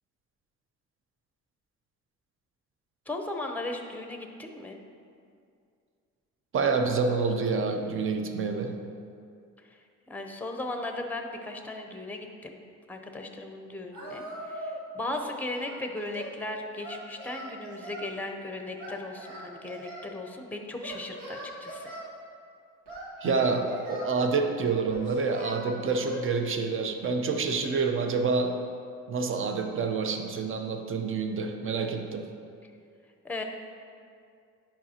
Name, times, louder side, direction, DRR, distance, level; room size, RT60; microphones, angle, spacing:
voice 1, 3.1-4.8 10.1-12.6 12.9-21.9 33.2-33.4, left 2 dB, 5° left, 3 dB, 0.7 m, -37 dB
voice 2, 6.5-8.7 23.2-28.5 29.1-32.2, right 4 dB, 45° right, 5 dB, 0.7 m, -27 dB
Singing, 13.9-14.8 15.1-16.4 16.8-18.1 18.8-20.1 20.8-22.0 22.9-24.1 24.9-26.2, right 1 dB, 90° right, 1.6 m, -40 dB
10.0 x 5.0 x 2.8 m, 2.3 s
cardioid pair, 90°, 30 cm